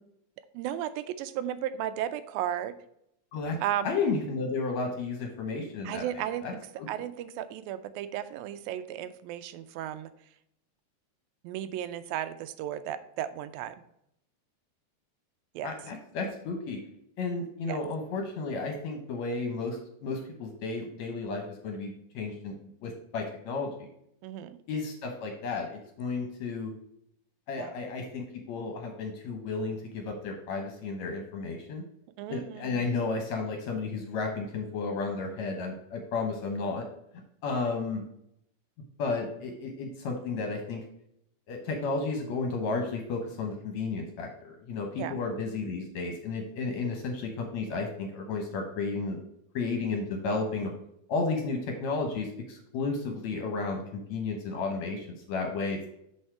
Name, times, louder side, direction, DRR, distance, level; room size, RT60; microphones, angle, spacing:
voice 1, 0.5-2.7 3.6-3.9 5.9-6.6 6.9-10.1 11.4-13.8 15.6-15.7 17.7-17.8 24.2-24.6 27.6-27.7 32.2-32.8 45.0-45.2, right 11 dB, 90° right, 12 dB, 2.4 m, -34 dB
voice 2, 3.8-6.5 6.8-6.9 15.6-16.8 17.2-22.5 22.8-23.9 24.7-26.7 27.5-31.8 32.3-36.9 37.4-38.0 39.0-40.8 41.5-49.2 49.5-50.7 51.1-55.9, left 4 dB, 65° left, 3 dB, 1.9 m, -33 dB
6.5 x 5.5 x 4.4 m, 0.75 s
omnidirectional pair, 4.0 m